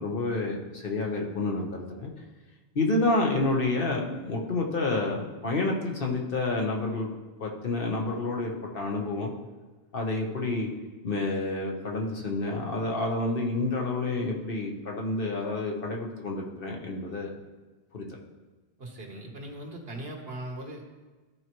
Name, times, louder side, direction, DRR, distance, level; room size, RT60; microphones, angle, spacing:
voice 1, 0.0-2.1 2.7-7.1 7.4-9.3 9.9-10.7 11.0-17.3 17.9-18.1, left 2 dB, 60° left, 0 dB, 1.3 m, -29 dB
voice 2, 18.8-20.9, right 1 dB, 70° right, 1 dB, 1.5 m, -39 dB
14.0 x 4.6 x 3.0 m, 1.3 s
omnidirectional pair, 1.1 m